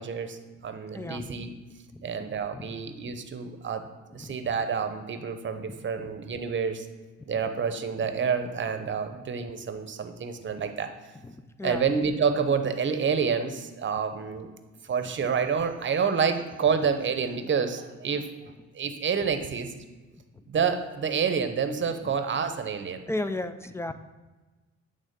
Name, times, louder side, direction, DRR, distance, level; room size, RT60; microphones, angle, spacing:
voice 1, 0.0-1.5 2.0-3.8 4.1-6.9 7.3-10.9 11.6-14.5 14.8-19.7 20.5-23.0, right 6 dB, 40° right, 8 dB, 0.8 m, -28 dB
voice 2, 0.9-1.3 1.9-2.7 4.1-4.4 11.2-11.8 22.0-22.1 23.1-23.9, left 2 dB, 10° left, 10 dB, 0.3 m, -35 dB
8.8 x 3.6 x 5.2 m, 1.2 s
cardioid pair, 90°, 30 cm